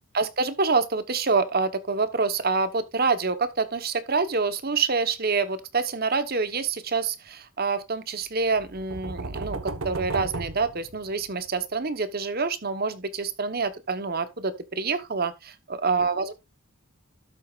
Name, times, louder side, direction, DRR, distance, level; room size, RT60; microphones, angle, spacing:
voice 1, 0.1-16.3, right 4 dB, 45° right, 1.1 m, -26 dB
sound 1, 8.5-11.5, right 3 dB, 70° right, 1.1 m, -34 dB
12.5 x 7.7 x 2.4 m
head